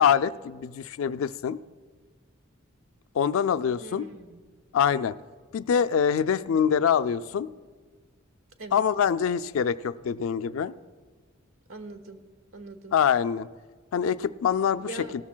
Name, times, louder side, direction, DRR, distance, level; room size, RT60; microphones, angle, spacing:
voice 1, 0.0-1.6 3.2-4.1 4.7-5.1 5.5-7.5 8.7-10.7 12.9-13.5 13.9-14.9, left 7 dB, 80° left, 14 dB, 0.4 m, -24 dB
voice 2, 3.8-4.4 8.6-8.8 11.7-12.2 12.5-12.9 14.8-15.1, right 3 dB, 85° right, 8 dB, 1.0 m, -41 dB
17.5 x 13.5 x 2.2 m, 1.5 s
head